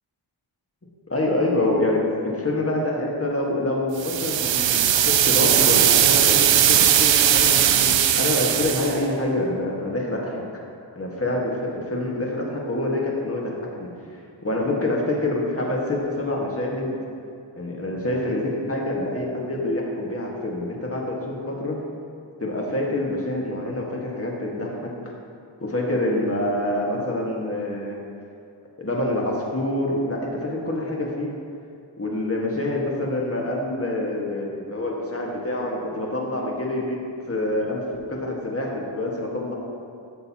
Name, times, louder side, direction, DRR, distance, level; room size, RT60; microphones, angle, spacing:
voice 1, 1.1-10.4 11.0-13.5 13.8-17.0 17.6-21.8 22.4-25.1 25.6-28.0 28.8-31.3 32.0-37.0 37.3-37.8 38.1-39.5, left 1 dB, 30° left, -2 dB, 1.7 m, -26 dB
sound 1, 4.0-9.0, right 10 dB, 65° right, 0.5 m, -18 dB
12.5 x 6.6 x 3.0 m, 2.4 s
cardioid pair, 60°, 49 cm